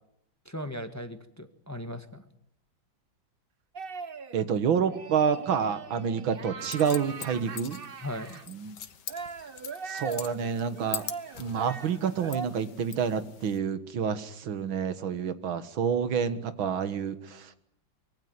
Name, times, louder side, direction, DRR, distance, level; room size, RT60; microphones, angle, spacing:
voice 1, 0.4-2.2 8.0-8.4, equal, 10° left, 9 dB, 1.5 m, -38 dB
sound 1, 3.7-4.4 4.9-8.4 9.1-12.5, right 5 dB, 35° right, 1.0 m, -40 dB
voice 2, 4.3-7.8 8.5-8.8 9.8-11.0 11.4-17.5, right 7 dB, 85° right, 12 dB, 2.3 m, -28 dB
sound 2, 6.6-13.6, left 8 dB, 60° left, 1.8 m, -43 dB
25.0 x 22.5 x 9.5 m, 0.75 s
omnidirectional pair, 2.1 m